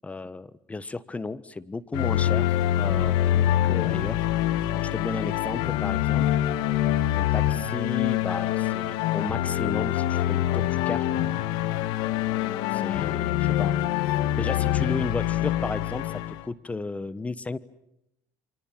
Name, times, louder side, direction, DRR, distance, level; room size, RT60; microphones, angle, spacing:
voice 1, 0.0-4.3 4.7-6.5 7.1-11.1 12.7-13.7 14.4-17.6, left 3 dB, 20° left, 17 dB, 1.3 m, -34 dB
sound 1, 1.9-16.4, left 12 dB, 80° left, 1.5 m, -25 dB
29.0 x 26.0 x 7.6 m, 0.82 s
cardioid pair, 100°, 8 cm